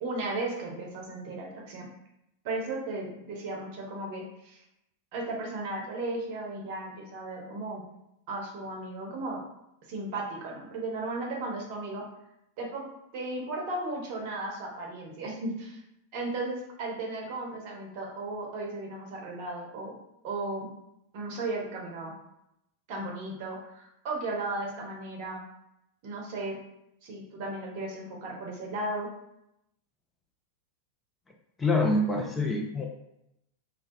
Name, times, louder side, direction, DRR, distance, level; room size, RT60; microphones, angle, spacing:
voice 1, 0.0-1.9 2.4-4.6 5.1-7.8 8.3-9.4 9.9-12.0 12.6-12.9 13.1-15.8 16.1-19.9 20.2-20.7 21.1-22.1 22.9-25.4 26.0-26.6 27.0-29.1, right 2 dB, 45° right, -1 dB, 0.6 m, -35 dB
voice 2, 31.6-32.8, left 2 dB, 15° left, 1 dB, 0.3 m, -26 dB
2.2 x 2.1 x 2.6 m, 0.83 s
figure-of-eight pair, 90°, 0 cm